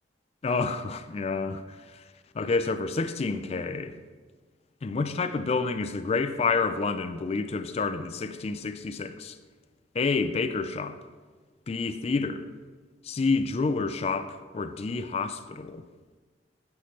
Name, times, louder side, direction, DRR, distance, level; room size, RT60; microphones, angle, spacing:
voice 1, 0.4-1.6 1.9-2.0 2.3-3.9 4.8-9.4 9.9-11.0 11.7-12.5 13.0-15.8, left 4 dB, 35° left, 11 dB, 0.4 m, -29 dB
8.2 x 5.7 x 3.2 m, 1.4 s
head